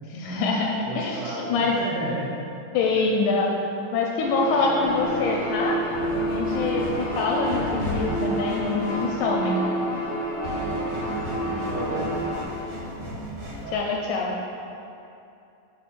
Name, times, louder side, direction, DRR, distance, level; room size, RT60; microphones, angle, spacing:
voice 1, 0.1-1.7 2.7-3.5 3.9-5.8 6.1-9.6 13.7-14.3, left 4 dB, 80° left, -1 dB, 1.9 m, -25 dB
voice 2, 0.7-2.3 10.4-11.0 11.7-12.3 13.6-13.9, right 2 dB, 75° right, -3 dB, 2.1 m, -34 dB
sound 1, 4.2-12.4, right 1 dB, 60° left, 1.3 m, -29 dB
sound 2, 4.9-13.8, right 1 dB, 55° right, 2.3 m, -35 dB
6.8 x 4.3 x 5.1 m, 2.7 s
omnidirectional pair, 3.9 m